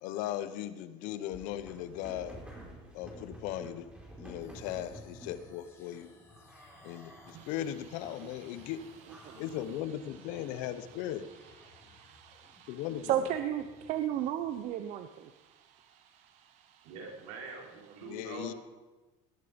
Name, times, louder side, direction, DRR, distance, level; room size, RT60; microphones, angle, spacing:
voice 1, 0.0-2.4 2.9-3.9 4.2-6.1 6.8-8.8 9.4-11.3 12.7-13.1 18.0-18.5, left 11 dB, 70° left, 13 dB, 1.1 m, -38 dB
sound 1, 1.0-5.5 6.3-7.6 8.0-8.6 9.1-10.9, right 1 dB, 10° right, 4.8 m, -51 dB
sound 2, 4.4-14.6, left 3 dB, 20° left, 4.9 m, -60 dB
voice 2, 7.3-16.9 17.3-17.4, right 10 dB, 60° right, 9 dB, 0.9 m, -38 dB
voice 3, 16.8-18.5, right 3 dB, 80° right, 0 dB, 4.4 m, -44 dB
20.0 x 11.0 x 5.3 m, 1.2 s
cardioid pair, 135°, 14 cm